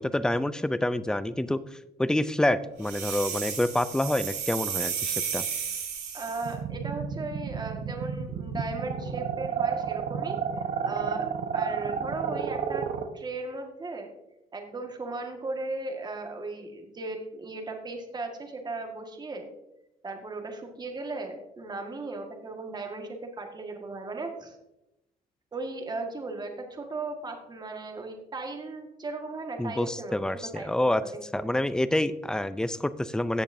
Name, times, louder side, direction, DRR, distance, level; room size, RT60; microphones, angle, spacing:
voice 1, 0.0-1.6 2.0-5.4 29.6-31.0 31.3-33.4, left 1 dB, 5° left, 15 dB, 0.4 m, -27 dB
sound 1, 2.8-6.5, right 7 dB, 80° right, 3.9 m, -33 dB
voice 2, 6.1-11.3 11.5-12.9 13.1-14.1 14.5-19.4 20.0-24.6 25.5-31.5, right 3 dB, 25° right, 3 dB, 1.7 m, -37 dB
sound 2, 6.4-13.1, right 7 dB, 55° right, 1.1 m, -31 dB
16.0 x 7.0 x 2.7 m, 0.89 s
cardioid pair, 110°, 17 cm